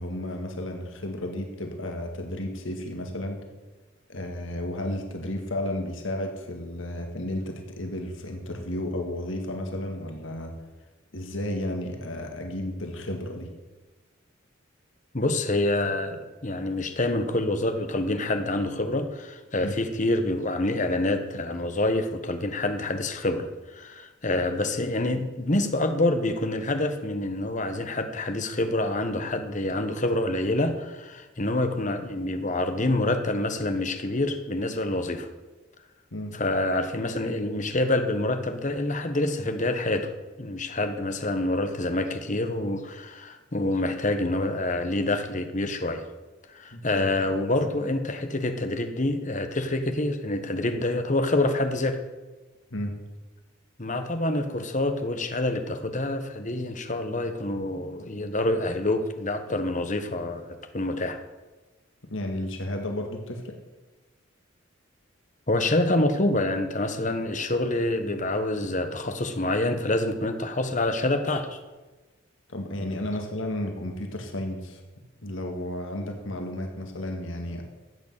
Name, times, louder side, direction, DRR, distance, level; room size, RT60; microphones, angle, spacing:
voice 1, 0.0-3.4 4.1-10.5 11.1-13.5 19.6-19.7 36.1-36.4 46.7-47.1 52.7-53.0 62.1-63.6 72.5-74.8 75.2-77.6, left 1 dB, 75° left, 3 dB, 2.1 m, -33 dB
voice 2, 15.1-35.3 36.3-40.1 40.4-46.0 46.5-52.0 53.8-61.2 65.5-71.6, left 2 dB, 40° left, 7 dB, 1.4 m, -27 dB
14.0 x 8.3 x 8.3 m, 1.2 s
head